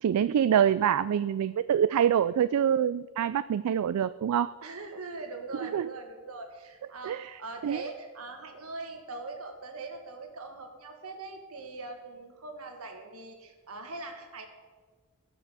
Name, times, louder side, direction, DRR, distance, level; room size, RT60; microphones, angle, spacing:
voice 1, 0.0-4.5 5.6-5.9 7.0-7.8, right 9 dB, 90° right, 14 dB, 0.3 m, -26 dB
voice 2, 4.6-14.5, right 3 dB, 70° right, 4 dB, 1.9 m, -41 dB
17.5 x 6.1 x 6.8 m, 1.4 s
head